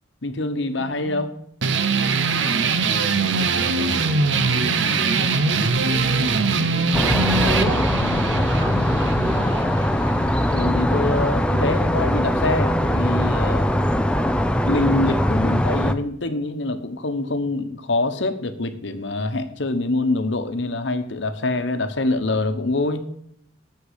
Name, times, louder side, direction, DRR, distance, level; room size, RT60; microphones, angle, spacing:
voice 1, 0.2-1.3 10.4-13.7 14.6-23.1, left 2 dB, 75° left, 9 dB, 1.0 m, -25 dB
voice 2, 0.8-1.2 2.7-9.6, equal, 50° right, -1 dB, 3.3 m, -33 dB
sound 1, 1.6-10.7, right 4 dB, 75° right, 0.8 m, -22 dB
sound 2, 6.9-15.9, equal, 5° left, 0.5 m, -21 dB
8.3 x 6.8 x 8.2 m, 0.70 s
head